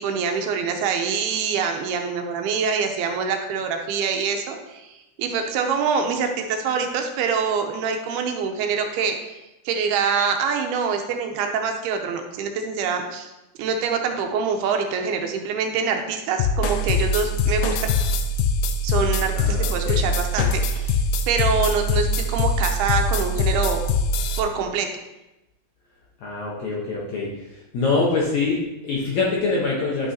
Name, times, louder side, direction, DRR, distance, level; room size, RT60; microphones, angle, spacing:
voice 1, 0.0-9.2 9.7-13.3 13.6-17.8 18.8-23.8 24.4-24.9, right 6 dB, 85° right, 4 dB, 2.7 m, -25 dB
sound 1, 16.4-24.4, left 2 dB, 85° left, 2.6 m, -23 dB
voice 2, 19.4-20.0 26.2-27.3 27.7-30.1, left 3 dB, 70° left, -4 dB, 1.8 m, -24 dB
11.0 x 6.1 x 2.8 m, 0.98 s
omnidirectional pair, 4.5 m